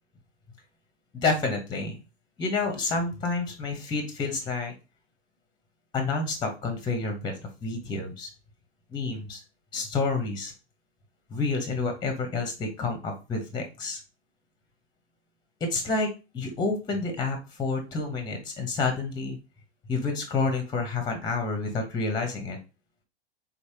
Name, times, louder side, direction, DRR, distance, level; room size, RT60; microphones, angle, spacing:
voice 1, 1.2-2.0 2.4-4.7 5.9-7.3 7.6-8.3 8.9-9.4 9.7-10.5 11.3-14.0 15.6-19.4 19.9-22.6, left 3 dB, 15° left, 5 dB, 1.0 m, -29 dB
3.9 x 3.3 x 2.9 m, 0.29 s
hypercardioid pair, 110°, 33 cm